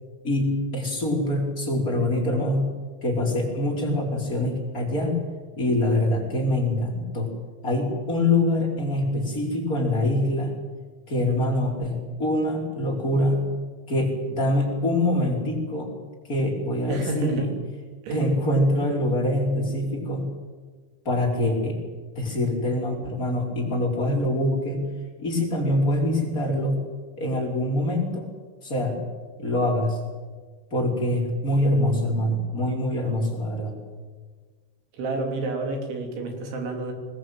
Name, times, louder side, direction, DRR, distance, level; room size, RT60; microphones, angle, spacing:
voice 1, 0.2-2.7 3.0-5.1 5.6-7.3 7.6-10.5 11.1-13.5 13.9-15.9 16.3-17.5 18.1-20.3 21.0-21.8 22.1-24.9 25.2-26.8 27.2-28.3 28.6-29.0 29.4-30.0 30.7-33.7, left 1 dB, 20° left, -1 dB, 5.1 m, -24 dB
voice 2, 16.9-17.5 18.0-18.3 35.0-36.9, right 2 dB, 70° right, 3 dB, 5.8 m, -29 dB
22.0 x 20.5 x 9.1 m, 1.4 s
omnidirectional pair, 5.5 m